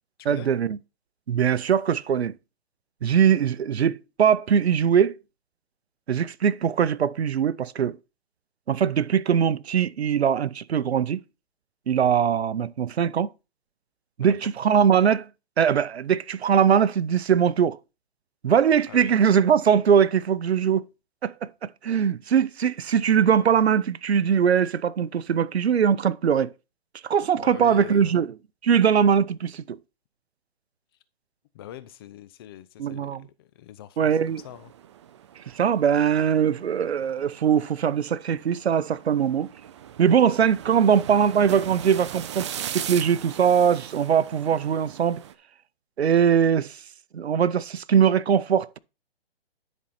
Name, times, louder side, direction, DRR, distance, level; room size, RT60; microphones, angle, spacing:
voice 1, 0.2-0.8 1.3-2.3 3.0-5.2 6.1-8.0 8.7-11.2 11.9-13.3 14.2-15.3 15.6-17.8 18.4-20.9 21.2-26.5 27.0-28.3 28.6-29.8 32.8-33.2 34.0-34.4 35.5-39.5 40.0-45.2 46.0-46.8 47.1-48.8, right 8 dB, 90° right, 0.6 m, -21 dB
voice 2, 27.4-28.1 31.5-34.2 34.4-34.7, left 12 dB, 25° left, 0.5 m, -42 dB
sound 1, 34.0-45.3, right 10 dB, 30° right, 0.4 m, -40 dB
10.5 x 4.3 x 4.2 m
hypercardioid pair, 145°, 31 cm